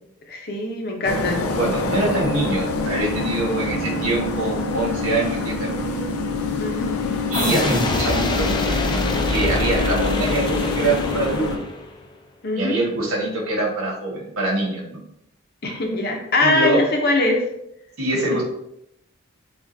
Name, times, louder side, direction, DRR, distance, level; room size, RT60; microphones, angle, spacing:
voice 1, 0.3-1.4 6.6-6.9 12.4-12.8 15.6-17.4 18.3-18.4, left 2 dB, 45° left, 2 dB, 0.8 m, -22 dB
sound 1, 1.0-11.6, left 3 dB, 90° left, 0.6 m, -26 dB
voice 2, 1.5-5.8 7.3-8.5 9.3-11.6 12.5-15.0 16.4-16.8 18.0-18.4, right 2 dB, 80° right, -3 dB, 1.5 m, -24 dB
sound 2, 7.3-12.0, left 1 dB, 20° left, 0.4 m, -24 dB
7.1 x 2.5 x 2.7 m, 0.78 s
head